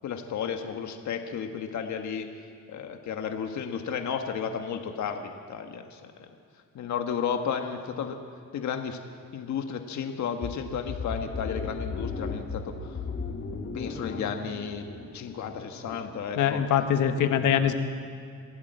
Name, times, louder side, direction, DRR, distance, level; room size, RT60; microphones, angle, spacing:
voice 1, 0.0-2.3 2.7-6.1 6.7-8.2 8.5-9.0 9.3-13.0 13.7-14.8 15.1-16.6 17.2-17.7, left 7 dB, 70° left, 5 dB, 1.5 m, -33 dB
sound 1, 10.4-16.0, left 4 dB, 45° left, 3.0 m, -36 dB
voice 2, 16.4-17.7, left 9 dB, 85° left, 7 dB, 1.5 m, -23 dB
26.5 x 13.0 x 8.0 m, 2.4 s
cardioid pair, 90°, 30 cm